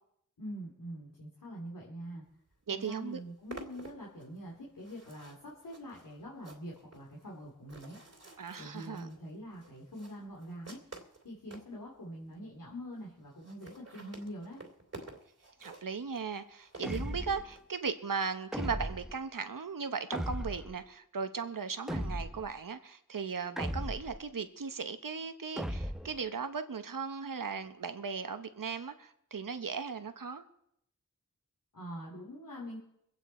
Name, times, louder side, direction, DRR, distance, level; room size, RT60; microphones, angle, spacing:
voice 1, 0.4-2.2 2.7-8.0 8.6-10.8 11.2-14.6 31.7-32.8, equal, 80° left, 2.7 m, -44 dB
sound 1, 2.5-2.6 2.9-11.7 12.3-12.4 12.6-12.7 12.9-13.0 13.3-17.6, right 2 dB, 50° right, 2.7 m, -51 dB
voice 2, 2.7-3.2 8.4-9.1 15.6-30.4, right 5 dB, 80° right, 1.1 m, -37 dB
sound 2, 16.8-17.5 18.5-19.2 20.1-20.8 21.9-22.5 23.6-24.2 25.6-26.2, equal, ahead, 0.7 m, -36 dB
23.5 x 8.9 x 4.4 m
wide cardioid pair, 55°, 33 cm